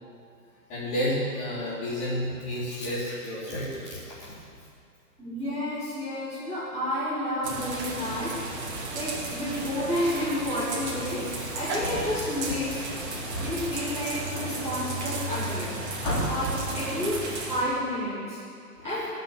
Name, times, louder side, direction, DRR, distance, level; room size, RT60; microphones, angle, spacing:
voice 1, 0.7-4.3 11.8-12.0 13.3-13.5 16.0-16.6 18.8-18.9, equal, 15° left, -10 dB, 3.9 m, -30 dB
voice 2, 5.2-8.7 8.9-12.8 13.4-19.1, left 1 dB, 5° right, -16 dB, 2.6 m, -31 dB
sound 1, 7.4-17.6, right 2 dB, 45° right, 2.5 m, -34 dB
17.5 x 6.3 x 7.9 m, 2.3 s
hypercardioid pair, 165°, 48 cm